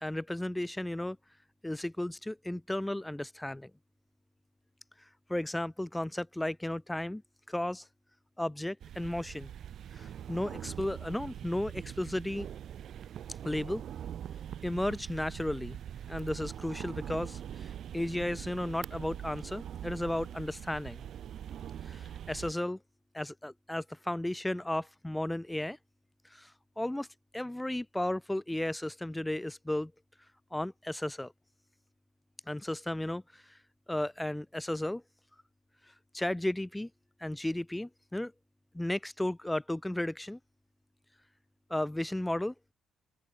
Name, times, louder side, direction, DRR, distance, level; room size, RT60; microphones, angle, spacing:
voice 1, 0.0-1.2 1.6-3.7 5.3-7.2 7.5-7.9 8.4-9.5 9.9-12.5 13.4-13.8 14.6-15.8 16.1-21.1 21.9-22.8 23.1-25.8 26.3-27.1 27.3-29.9 30.5-31.3 32.5-33.6 33.9-35.0 36.1-36.9 37.2-38.3 38.7-40.4 41.7-42.5, left 1 dB, 10° left, 0.6 m, -34 dB
sound 1, 8.8-22.5, right 10 dB, 65° right, 1.7 m, -43 dB
open air
cardioid pair, 90°, 0 cm